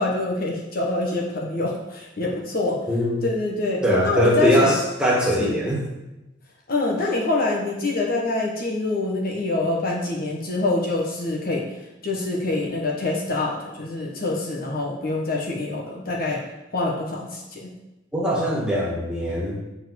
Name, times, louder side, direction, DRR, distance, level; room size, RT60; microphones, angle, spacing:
voice 1, 0.0-2.8 3.2-4.7 5.4-5.6 6.7-11.6 12.0-16.4 16.7-17.7, left 2 dB, 55° left, -1 dB, 1.4 m, -25 dB
voice 2, 2.9-3.2 3.8-5.8 18.1-19.6, equal, 5° right, -4 dB, 2.1 m, -21 dB
7.0 x 4.8 x 6.5 m, 0.99 s
head